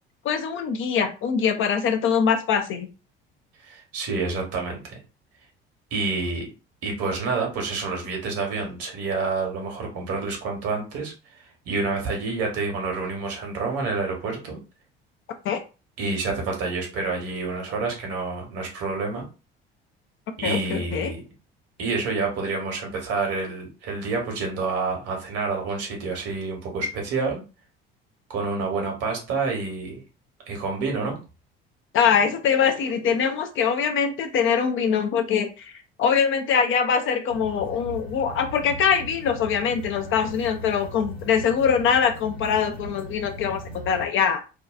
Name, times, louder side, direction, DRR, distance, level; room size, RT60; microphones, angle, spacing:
voice 1, 0.2-2.9 15.4-15.6 20.4-21.1 31.9-35.7 36.0-44.4, left 7 dB, 45° left, 6 dB, 0.5 m, -23 dB
voice 2, 3.6-5.0 5.9-6.5 6.8-14.6 16.0-19.2 20.4-21.2 21.8-27.4 28.3-30.0 30.5-31.2, right 4 dB, 55° right, 2 dB, 1.1 m, -28 dB
sound 1, 37.3-44.1, equal, 85° left, 0.9 m, -38 dB
2.6 x 2.2 x 2.3 m, 0.31 s
figure-of-eight pair, 60°, 30 cm